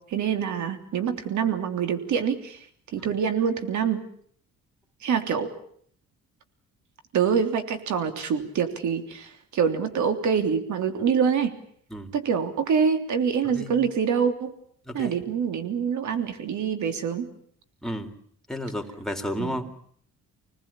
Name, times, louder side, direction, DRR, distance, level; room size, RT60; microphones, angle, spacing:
voice 1, 0.1-2.6 2.9-4.0 5.0-5.5 7.1-11.5 12.1-14.5 14.9-17.3 19.4-19.5, right 7 dB, 70° right, 7 dB, 3.3 m, -25 dB
voice 2, 14.9-15.2 17.8-18.1 18.5-19.7, equal, ahead, 3 dB, 3.7 m, -32 dB
26.5 x 19.0 x 8.8 m, 0.63 s
cardioid pair, 90°, 30 cm